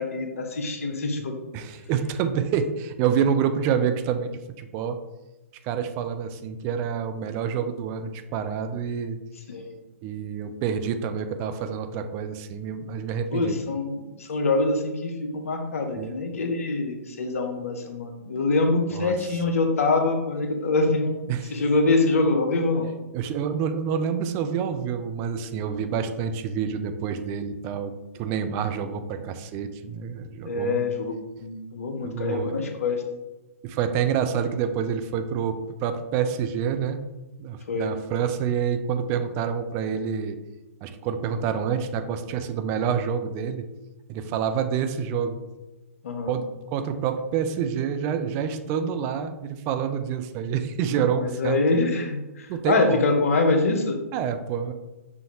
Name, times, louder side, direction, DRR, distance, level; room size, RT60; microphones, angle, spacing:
voice 1, 0.0-1.3 9.5-9.7 13.3-22.9 30.4-33.0 37.7-37.9 46.0-46.3 51.0-54.0, left 3 dB, 75° left, 4 dB, 0.7 m, -25 dB
voice 2, 1.5-4.3 4.6-5.0 5.6-9.2 10.0-13.6 16.0-16.2 18.9-19.1 21.3-21.6 23.1-30.8 32.0-32.5 33.6-37.0 37.4-40.4 40.8-43.7 44.1-45.4 46.3-46.4 46.7-51.6 52.5-53.0 54.1-54.7, right 7 dB, 30° right, 9 dB, 0.4 m, -27 dB
5.7 x 2.5 x 2.9 m, 1.0 s
hypercardioid pair, 125°, 8 cm